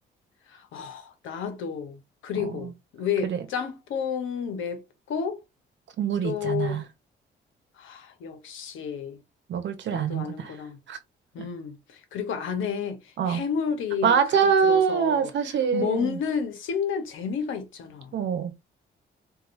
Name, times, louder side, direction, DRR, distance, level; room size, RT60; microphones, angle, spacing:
voice 1, 0.5-4.8 5.1-5.4 6.2-6.8 7.8-9.2 9.9-10.8 11.3-14.4 14.6-15.3 15.7-18.2, left 7 dB, 80° left, 1.1 m, -31 dB
voice 2, 6.0-6.8 9.5-10.5 10.9-11.0 13.2-13.4 14.0-16.2 18.1-18.5, right 7 dB, 65° right, 1.0 m, -24 dB
4.9 x 2.6 x 2.6 m
cardioid pair, 90°, 20 cm